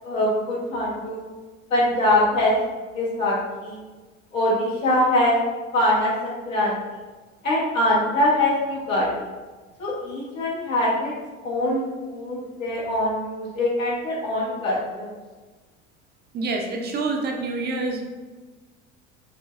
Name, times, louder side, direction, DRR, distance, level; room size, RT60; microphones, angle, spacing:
voice 1, 0.0-1.2 1.7-2.5 2.9-3.8 4.3-5.4 5.7-6.8 7.4-9.1 9.8-11.1 11.4-15.1, left 1 dB, 80° left, -7 dB, 1.5 m, -23 dB
voice 2, 16.3-18.0, right 3 dB, 25° right, 1 dB, 0.5 m, -27 dB
4.1 x 3.1 x 2.4 m, 1.3 s
figure-of-eight pair, 75°, 39 cm